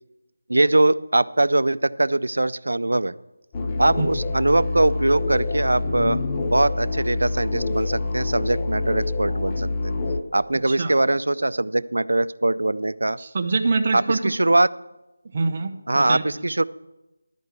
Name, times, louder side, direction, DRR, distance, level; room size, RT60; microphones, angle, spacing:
voice 1, 0.5-3.1 3.8-6.2 6.5-9.9 10.3-13.2 13.9-14.7 15.9-16.6, right 2 dB, 90° right, 16 dB, 0.4 m, -21 dB
sound 1, 3.5-10.2, left 3 dB, 15° left, 0.5 m, -26 dB
voice 2, 13.2-14.3 15.3-16.3, right 3 dB, 30° right, 6 dB, 0.8 m, -25 dB
11.5 x 5.3 x 8.2 m, 1.0 s
figure-of-eight pair, 175°, 0 cm